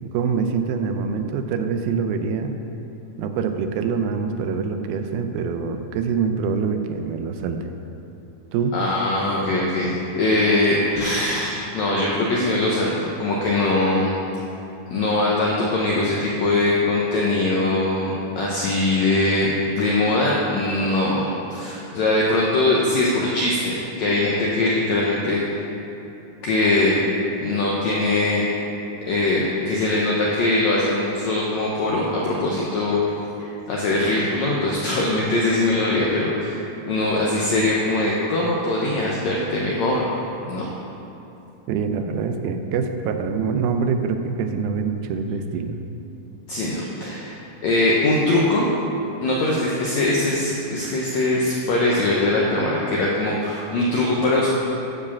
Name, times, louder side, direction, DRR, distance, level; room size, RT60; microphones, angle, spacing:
voice 1, 0.0-2.6 3.2-7.7 8.5-8.8 41.7-45.8, right 5 dB, 85° right, 7 dB, 2.4 m, -25 dB
voice 2, 8.7-14.1 14.9-25.4 26.4-27.0 27.4-28.4 29.1-33.0 33.7-40.1 40.5-40.7 46.5-48.7 49.2-54.5, left 2 dB, 85° left, -4 dB, 1.6 m, -21 dB
9.6 x 4.8 x 7.1 m, 2.9 s
omnidirectional pair, 4.3 m